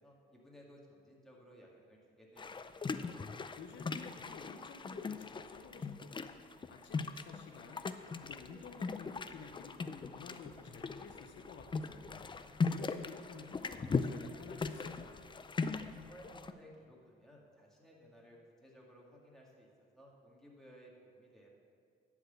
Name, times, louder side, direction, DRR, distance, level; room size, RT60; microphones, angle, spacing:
voice 1, 0.0-2.6 16.0-21.5, equal, ahead, -4 dB, 2.3 m, -58 dB
sound 1, 2.4-16.5, left 4 dB, 25° left, 0.5 m, -39 dB
voice 2, 3.6-6.3 6.7-7.9 8.2-12.3 12.7-15.3, left 5 dB, 65° left, 3 dB, 0.9 m, -52 dB
11.5 x 4.8 x 7.9 m, 2.3 s
cardioid pair, 90°, 20 cm